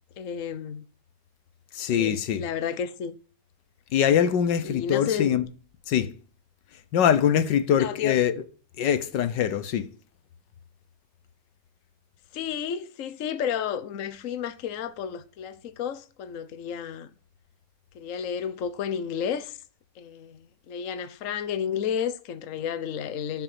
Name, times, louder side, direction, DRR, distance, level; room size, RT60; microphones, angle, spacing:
voice 1, 0.2-0.9 1.8-3.2 4.6-5.4 6.0-6.1 7.8-8.2 12.3-17.1 17.9-19.6 20.0-23.4, left 8 dB, 50° left, 1.2 m, -32 dB
voice 2, 1.7-2.4 3.9-5.4 5.9-6.2 6.9-8.4 8.8-9.9, left 9 dB, 80° left, 1.6 m, -23 dB
11.5 x 6.1 x 8.4 m
omnidirectional pair, 1.9 m